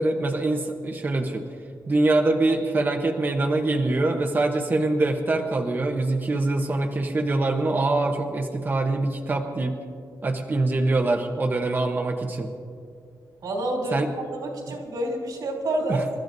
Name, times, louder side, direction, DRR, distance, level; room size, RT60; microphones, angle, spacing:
voice 1, 0.0-1.5 1.9-9.8 10.2-12.5 13.9-14.1 15.8-16.0, right 2 dB, 30° right, 2 dB, 0.9 m, -24 dB
voice 2, 13.4-16.2, right 1 dB, 85° right, -1 dB, 3.1 m, -29 dB
28.0 x 13.5 x 2.7 m, 2.3 s
wide cardioid pair, 150°, 7 cm